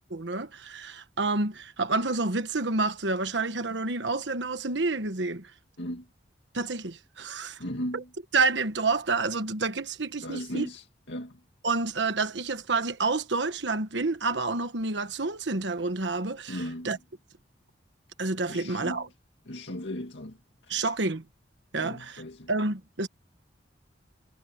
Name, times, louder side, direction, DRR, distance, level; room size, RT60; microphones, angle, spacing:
voice 1, 0.1-5.5 6.5-7.6 7.9-8.0 8.3-10.7 11.6-17.0 18.2-19.1 20.7-21.2 21.7-22.2 22.5-23.1, right 3 dB, 70° right, 1.3 m, -29 dB
voice 2, 7.6-8.1 10.2-11.4 16.5-16.9 18.5-19.0 19.5-20.4 20.7-20.8 21.8-22.5, equal, 75° left, 2.0 m, -36 dB
head